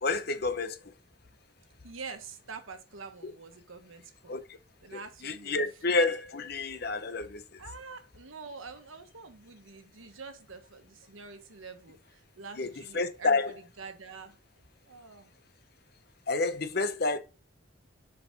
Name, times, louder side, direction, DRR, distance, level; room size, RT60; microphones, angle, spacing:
voice 1, 0.0-0.8 4.3-4.4 4.9-7.4 12.6-12.7 12.9-13.5 16.3-17.2, left 3 dB, 50° left, 0.8 m, -29 dB
voice 2, 1.8-4.4 4.8-5.8 7.6-14.4 14.9-15.3, right 4 dB, 90° right, 1.2 m, -46 dB
6.9 x 5.0 x 4.0 m
head